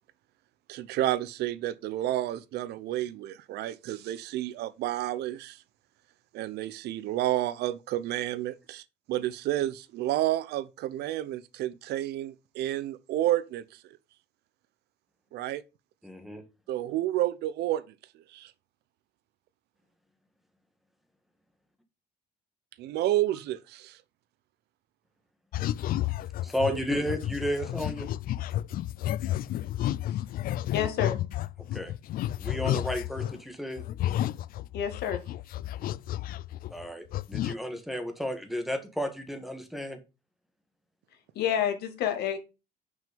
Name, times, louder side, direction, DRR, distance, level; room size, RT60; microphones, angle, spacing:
voice 1, 0.7-5.6 6.3-13.6 15.3-15.6 16.7-17.8 18.3-18.5 22.8-24.0 26.7-26.8, right 14 dB, 75° right, 0.7 m, -30 dB
voice 2, 16.0-16.4 26.4-28.1 31.7-31.9 32.4-33.8 36.7-40.0, equal, ahead, 1.8 m, -32 dB
sound 1, 25.5-33.4 33.8-36.8 37.1-37.5, left 13 dB, 60° left, 0.4 m, -32 dB
voice 3, 30.7-31.2 34.7-35.2 41.4-42.4, left 9 dB, 75° left, 2.0 m, -29 dB
6.1 x 5.6 x 5.2 m
cardioid pair, 110°, 17 cm